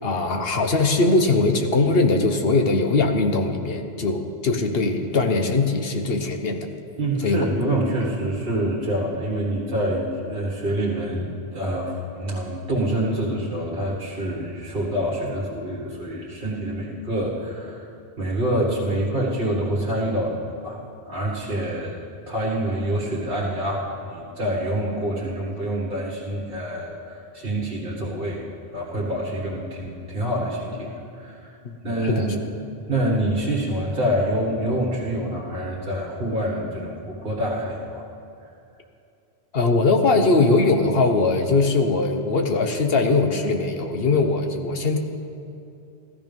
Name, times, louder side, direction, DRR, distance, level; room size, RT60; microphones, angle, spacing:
voice 1, 0.0-6.7 7.2-7.4 31.6-32.3 39.5-45.0, left 3 dB, 70° left, 5 dB, 1.3 m, -21 dB
voice 2, 7.0-17.9 18.2-20.8 21.1-22.0 22.3-28.4 28.7-31.6 31.8-32.4 32.9-38.0 38.4-38.5, right 1 dB, 60° right, -4 dB, 1.9 m, -26 dB
14.5 x 13.5 x 5.4 m, 2.6 s
omnidirectional pair, 1.1 m